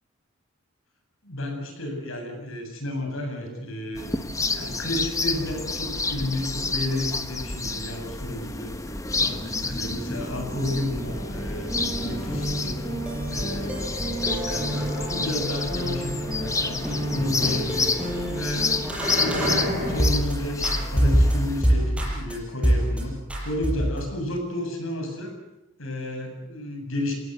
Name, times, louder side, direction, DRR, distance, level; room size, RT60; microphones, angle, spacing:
voice 1, 1.2-4.1 4.5-8.7 9.2-12.8 13.3-16.8 17.1-18.0 18.3-18.8 19.2-23.2 23.4-25.3 25.8-27.1, left 1 dB, 70° left, 3 dB, 7.7 m, -31 dB
sound 1, 4.0-21.6, left 3 dB, 15° left, 1.4 m, -30 dB
sound 2, 10.6-20.3 20.6-22.3 22.6-23.0 23.3-24.1, equal, 5° right, 6.6 m, -27 dB
27.5 x 18.5 x 8.2 m, 0.92 s
head